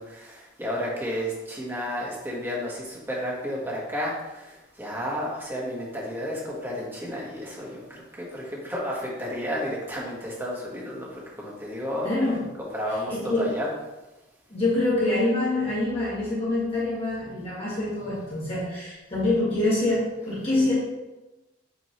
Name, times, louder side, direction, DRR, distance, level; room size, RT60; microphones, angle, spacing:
voice 1, 0.0-12.1 12.6-13.7, equal, 10° right, -4 dB, 1.4 m, -32 dB
voice 2, 12.0-12.4 13.1-13.4 14.5-20.7, left 2 dB, 30° left, -9 dB, 2.0 m, -25 dB
7.3 x 4.4 x 3.2 m, 1.0 s
head